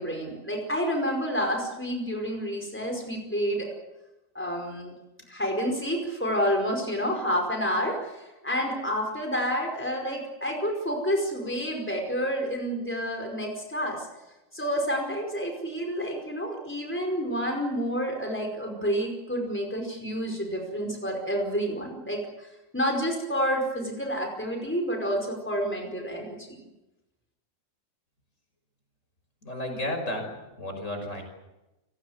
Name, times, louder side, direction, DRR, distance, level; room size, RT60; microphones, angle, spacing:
voice 1, 0.0-3.7 4.3-4.9 5.3-14.1 14.5-22.5 22.7-26.6, equal, 10° left, 1 dB, 5.0 m, -29 dB
voice 2, 29.4-31.2, left 1 dB, 65° left, 4 dB, 6.2 m, -33 dB
30.0 x 17.5 x 8.1 m, 1.0 s
omnidirectional pair, 1.4 m